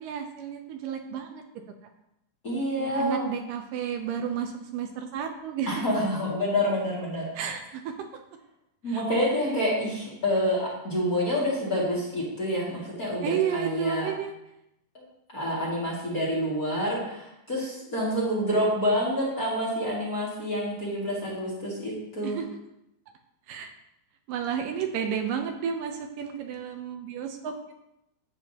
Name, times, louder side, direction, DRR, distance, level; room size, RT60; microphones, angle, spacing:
voice 1, 0.0-1.4 2.8-5.7 7.4-7.9 8.9-9.0 13.2-14.3 22.2-22.5 23.5-23.7 24.3-27.5, right 8 dB, 75° right, 4 dB, 2.2 m, -31 dB
voice 2, 2.4-3.3 5.7-7.3 8.8-14.1 14.9-15.1 15.3-22.4, equal, 30° left, -6 dB, 2.2 m, -28 dB
12.0 x 8.1 x 2.9 m, 0.85 s
omnidirectional pair, 4.1 m